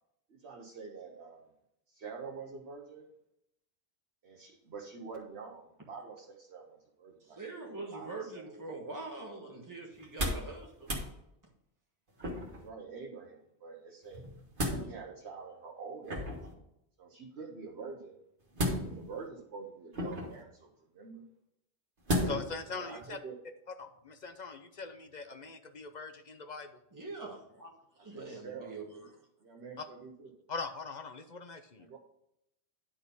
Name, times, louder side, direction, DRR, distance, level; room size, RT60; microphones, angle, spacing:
voice 1, 0.3-1.4 1.9-3.1 4.2-7.4 7.9-8.6 12.5-14.3 14.7-16.2 17.0-18.2 18.8-21.2 22.7-23.4 28.0-28.8 29.4-30.3 31.8-32.0, right 5 dB, 75° right, -1 dB, 1.3 m, -46 dB
voice 2, 7.2-10.9 26.9-29.1, right 3 dB, 15° right, -2 dB, 1.5 m, -44 dB
sound 1, 10.0-10.5 10.8-11.1 12.2-12.7 14.1-14.8 16.1-16.5 18.5-19.2 19.9-20.4 22.1-22.6 23.0-23.1, equal, 50° right, 1.7 m, -33 dB
voice 3, 22.2-23.2 23.8-26.7 29.8-29.9 30.5-31.9, left 4 dB, 45° left, 7 dB, 0.7 m, -41 dB
10.5 x 4.3 x 5.4 m, 0.80 s
omnidirectional pair, 1.1 m